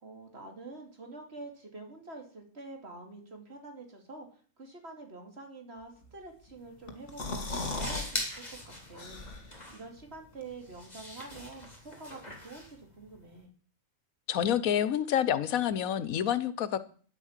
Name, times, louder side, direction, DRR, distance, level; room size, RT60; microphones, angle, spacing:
voice 1, 0.0-13.5, right 3 dB, 50° right, 3.0 m, -47 dB
sound 1, 6.6-13.4, left 1 dB, 30° left, 3.6 m, -43 dB
sound 2, 6.9-8.1 8.5-8.6 9.0-9.6, left 3 dB, 60° left, 2.4 m, -36 dB
voice 2, 14.3-16.8, left 10 dB, 85° left, 1.2 m, -28 dB
9.9 x 8.4 x 7.3 m
omnidirectional pair, 1.4 m